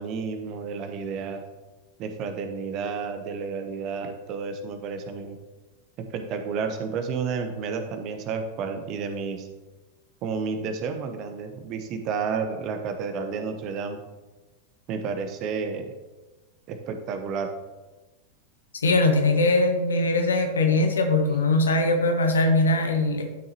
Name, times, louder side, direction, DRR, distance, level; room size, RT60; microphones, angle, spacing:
voice 1, 0.0-1.4 2.0-5.4 6.1-9.5 10.2-14.0 14.9-15.9 16.7-17.5, right 5 dB, 40° right, 6 dB, 1.1 m, -31 dB
voice 2, 18.8-23.2, left 2 dB, 70° left, 4 dB, 1.2 m, -21 dB
11.5 x 6.6 x 2.9 m, 1.2 s
figure-of-eight pair, 90°, 0 cm